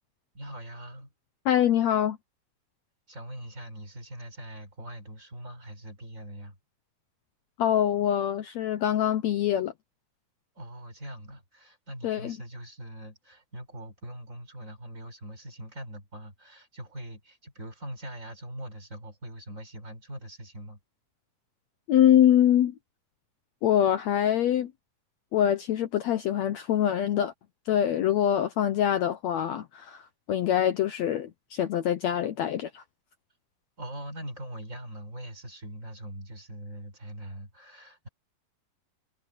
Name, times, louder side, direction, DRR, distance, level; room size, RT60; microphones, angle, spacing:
voice 1, 0.3-1.1 3.1-6.6 10.6-20.8 33.8-38.1, right 1 dB, 20° right, 6.7 m, -42 dB
voice 2, 1.4-2.2 7.6-9.7 12.0-12.4 21.9-22.7 23.6-24.7 25.3-27.3 27.7-32.8, left 10 dB, 75° left, 1.6 m, -24 dB
omnidirectional pair, 4.1 m